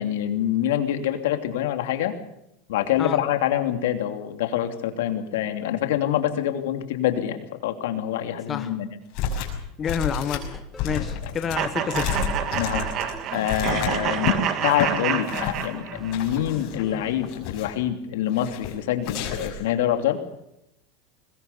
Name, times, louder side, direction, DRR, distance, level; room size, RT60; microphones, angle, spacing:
voice 1, 0.0-2.2 2.7-9.0 11.0-11.3 12.5-12.9 13.3-14.3 14.6-20.2, left 11 dB, 85° left, 6 dB, 2.9 m, -26 dB
sound 1, 9.1-9.6 9.8-14.4 14.7-14.9 15.3-15.6 16.1-16.8 17.2-17.8 18.3-18.7 19.0-19.7, left 8 dB, 55° left, 6.0 m, -30 dB
voice 2, 9.8-10.5 10.8-12.2, left 7 dB, 25° left, 8 dB, 1.4 m, -28 dB
sound 2, 10.3-11.1 11.9-13.9 14.3-17.4, left 2 dB, 10° left, 1.9 m, -42 dB
sound 3, 11.5-16.2, right 9 dB, 40° right, 2.1 m, -28 dB
21.5 x 21.0 x 6.9 m, 0.81 s
supercardioid pair, 150°, 0 cm